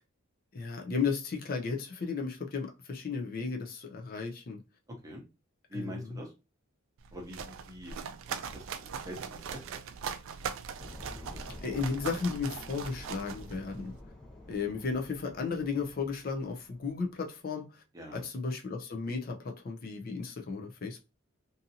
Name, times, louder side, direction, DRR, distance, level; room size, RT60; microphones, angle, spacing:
voice 1, 0.5-4.6 5.7-6.2 11.6-13.9 14.5-17.8 18.1-21.0, left 4 dB, 45° left, 0.5 m, -34 dB
voice 2, 5.7-6.3 7.1-7.9 8.4-9.6 17.9-18.2, equal, 15° right, 0.7 m, -44 dB
sound 1, 7.0-14.0, right 7 dB, 70° right, 0.3 m, -41 dB
sound 2, 10.8-17.1, left 1 dB, 5° left, 1.1 m, -49 dB
2.6 x 2.5 x 2.7 m
head